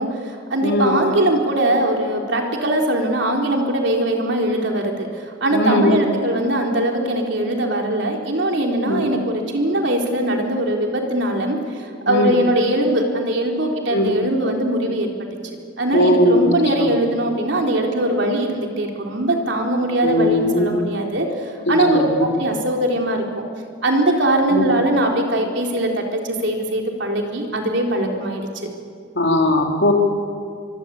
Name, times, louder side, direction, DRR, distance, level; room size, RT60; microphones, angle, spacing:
voice 1, 0.0-15.1 15.8-23.2 23.8-28.7, right 1 dB, 65° right, 1 dB, 4.0 m, -21 dB
voice 2, 0.6-1.0 5.5-6.0 8.9-9.1 12.1-12.4 13.9-14.1 15.9-16.4 16.8-16.9 20.0-20.8 21.9-22.3 24.5-24.7 29.2-29.9, left 1 dB, 60° left, 2 dB, 3.7 m, -18 dB
25.0 x 24.0 x 8.5 m, 2.3 s
head